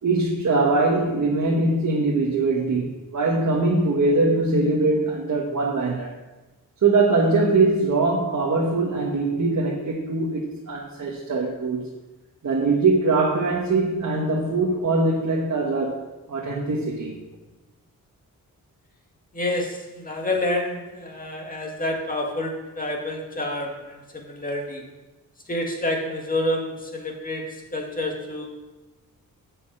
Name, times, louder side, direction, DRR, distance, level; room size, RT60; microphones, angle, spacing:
voice 1, 0.0-6.1 6.8-11.8 12.4-16.0 16.3-17.2, right 3 dB, 55° right, -2 dB, 1.5 m, -22 dB
voice 2, 19.3-24.9 25.5-28.5, left 1 dB, 25° left, 1 dB, 2.1 m, -28 dB
9.4 x 5.4 x 7.5 m, 1.1 s
cardioid pair, 90°, 34 cm